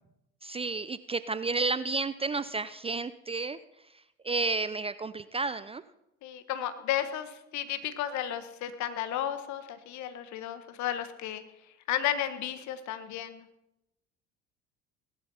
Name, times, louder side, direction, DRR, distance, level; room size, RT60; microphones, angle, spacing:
voice 1, 0.4-3.6 4.2-5.8, right 3 dB, 15° right, 15 dB, 0.5 m, -31 dB
voice 2, 6.2-11.4 11.9-13.4, left 11 dB, 55° left, 10 dB, 1.5 m, -33 dB
18.5 x 11.0 x 4.3 m, 0.87 s
hypercardioid pair, 65°, 34 cm